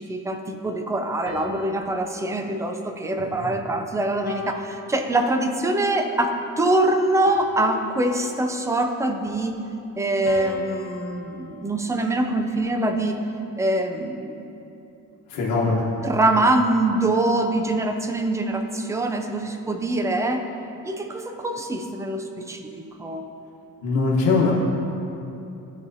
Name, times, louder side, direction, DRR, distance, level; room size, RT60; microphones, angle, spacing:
voice 1, 0.0-9.6 10.0-13.2 13.6-14.4 16.0-20.5 20.8-23.2, right 2 dB, 10° right, 5 dB, 0.4 m, -24 dB
sound 1, 1.3-3.7 4.3-5.7 7.3-8.7 10.3-12.6, left 5 dB, 50° left, 0.8 m, -40 dB
voice 2, 3.2-3.5 15.3-15.9 23.8-24.5, left 4 dB, 65° left, -6 dB, 1.2 m, -22 dB
13.5 x 4.8 x 2.7 m, 2.8 s
cardioid pair, 140°, 33 cm